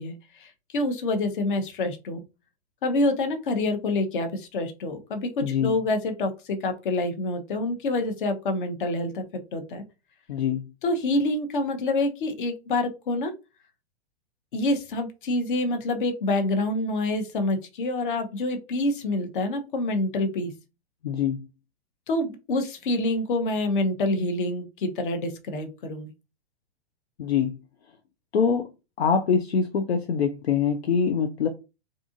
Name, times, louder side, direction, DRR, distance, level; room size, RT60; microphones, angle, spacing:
voice 1, 0.0-2.2 2.8-9.8 10.8-13.3 14.5-20.5 22.1-26.1, left 2 dB, 50° left, 0.8 m, -27 dB
voice 2, 5.4-5.8 10.3-10.6 21.0-21.4 27.2-27.5 28.3-28.7 29.0-31.5, left 6 dB, 70° left, 0.5 m, -24 dB
2.7 x 2.4 x 2.4 m
figure-of-eight pair, 110°, 33 cm